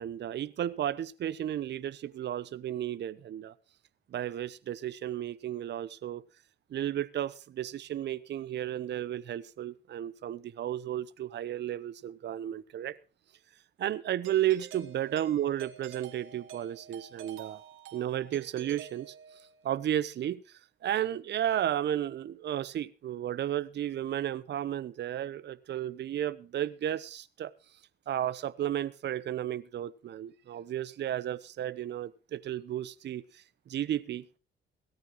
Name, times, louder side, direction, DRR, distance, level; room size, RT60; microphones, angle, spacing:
voice 1, 0.0-3.5 4.1-6.2 6.7-12.9 13.8-17.6 17.9-19.1 19.6-20.4 20.8-27.5 28.1-34.4, right 11 dB, 60° right, 18 dB, 0.8 m, -33 dB
Doorbell, 14.2-19.7, right 10 dB, 85° right, 1.9 m, -48 dB
17.5 x 13.5 x 3.1 m, 0.33 s
cardioid pair, 90°, 20 cm